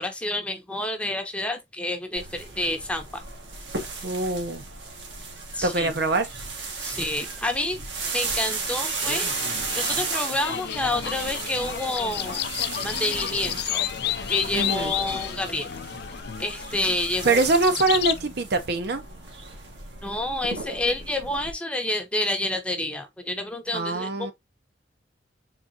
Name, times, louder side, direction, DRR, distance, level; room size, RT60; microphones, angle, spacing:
voice 1, 0.0-3.2 5.5-5.9 6.8-7.8 8.1-9.3 9.7-12.4 12.8-13.9 14.3-15.7 16.4-17.4 20.0-24.3, left 1 dB, 5° left, 0.7 m, -29 dB
sound 1, 2.2-21.5, right 4 dB, 80° right, 1.3 m, -35 dB
voice 2, 4.0-4.6 5.6-6.3 14.5-14.9 17.2-19.0 23.7-24.3, right 3 dB, 60° right, 0.7 m, -23 dB
sound 2, 8.5-18.2, left 10 dB, 60° left, 0.4 m, -31 dB
3.9 x 3.6 x 2.7 m
head